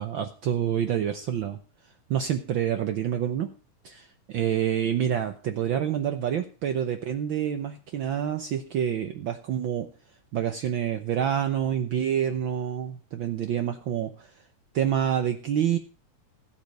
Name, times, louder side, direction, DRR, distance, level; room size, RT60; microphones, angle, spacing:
voice 1, 0.0-1.6 2.1-3.5 3.8-9.9 10.3-14.3 14.7-15.8, right 9 dB, 80° right, 7 dB, 1.0 m, -27 dB
16.5 x 7.4 x 5.3 m, 0.37 s
omnidirectional pair, 3.4 m